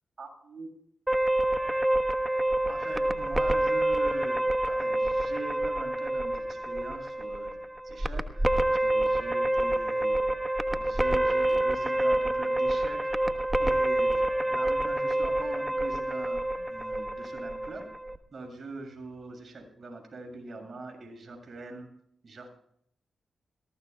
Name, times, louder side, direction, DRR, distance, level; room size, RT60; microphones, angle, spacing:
voice 1, 0.2-0.7 2.7-7.6 7.8-10.2 10.8-13.1 13.6-16.4 16.7-17.9 18.3-21.9 22.2-22.5, right 3 dB, 55° right, 2 dB, 7.1 m, -43 dB
sound 1, 1.1-18.2, right 1 dB, 15° right, 1.3 m, -27 dB
21.5 x 18.0 x 2.3 m, 0.67 s
cardioid pair, 50°, 0 cm